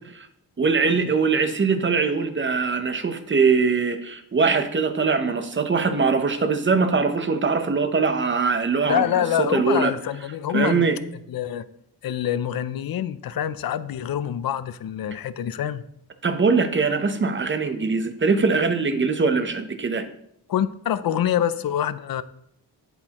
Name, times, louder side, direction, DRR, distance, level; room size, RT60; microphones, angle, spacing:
voice 1, 0.6-9.9 10.5-11.0 16.2-20.0, right 4 dB, 30° right, 8 dB, 0.7 m, -22 dB
voice 2, 8.9-10.9 11.3-11.6 12.0-15.8 20.5-22.2, left 10 dB, 65° left, 14 dB, 0.5 m, -25 dB
8.5 x 8.2 x 2.9 m, 0.72 s
wide cardioid pair, 150°, 38 cm